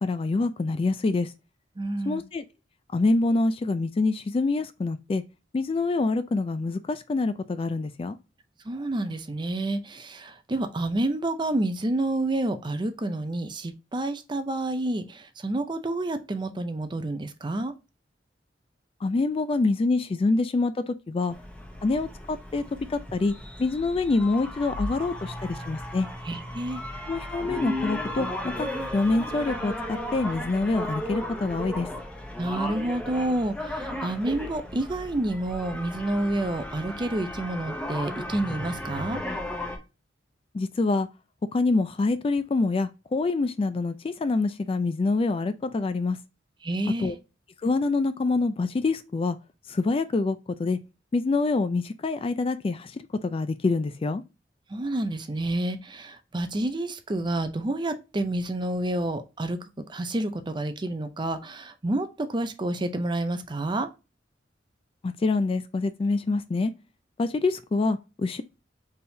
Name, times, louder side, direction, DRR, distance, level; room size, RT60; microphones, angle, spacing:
voice 1, 0.0-1.3 2.1-2.4 2.9-5.2 5.5-8.2 19.0-21.4 21.8-22.6 22.9-23.3 23.6-26.1 27.1-31.9 40.5-41.1 41.5-46.2 47.0-47.2 47.6-49.4 49.7-50.8 51.1-54.2 65.0-66.7 67.2-68.4, left 3 dB, 30° left, 0.3 m, -26 dB
voice 2, 1.8-2.2 8.7-17.7 26.2-26.8 32.4-39.2 46.6-47.1 54.7-59.6 59.9-63.9, right 1 dB, 25° right, 0.5 m, -29 dB
sound 1, 21.3-39.8, left 1 dB, 5° left, 0.8 m, -35 dB
4.4 x 3.5 x 2.7 m
head